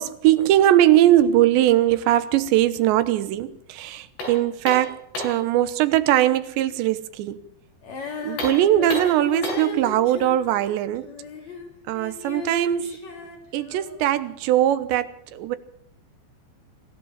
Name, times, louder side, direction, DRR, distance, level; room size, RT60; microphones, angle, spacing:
voice 1, 0.0-7.4 8.2-11.1 11.9-13.1 13.5-15.6, right 13 dB, 80° right, 3.2 m, -20 dB
sound 1, 4.2-5.5 8.3-9.8, left 1 dB, 75° left, 9.4 m, -32 dB
Female singing, 7.8-14.1, left 4 dB, 40° left, 4.2 m, -36 dB
25.0 x 15.0 x 7.4 m
omnidirectional pair, 5.0 m